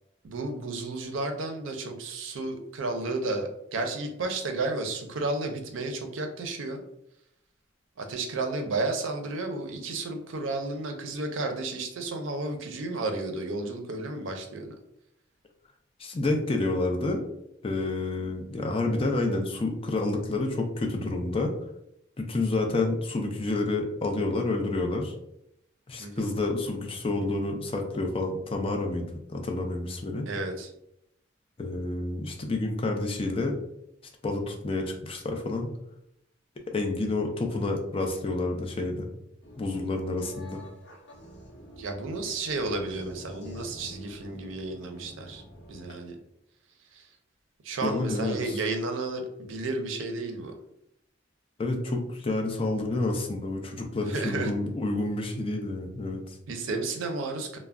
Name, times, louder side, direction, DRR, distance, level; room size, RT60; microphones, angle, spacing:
voice 1, 0.2-6.8 8.0-14.7 26.0-26.3 30.3-30.7 41.8-45.4 45.7-46.2 46.9-47.1 47.6-50.5 54.1-54.5 56.5-57.6, right 2 dB, 85° right, 4 dB, 0.5 m, -32 dB
voice 2, 16.0-17.2 17.6-21.5 22.2-25.1 25.9-30.2 31.6-33.5 34.2-35.7 36.7-39.1 39.6-40.6 47.8-48.6 51.6-56.4, left 2 dB, 30° left, 3 dB, 0.4 m, -29 dB
sound 1, 39.4-45.9, equal, 65° left, 0.6 m, -47 dB
2.3 x 2.0 x 3.4 m, 0.78 s
head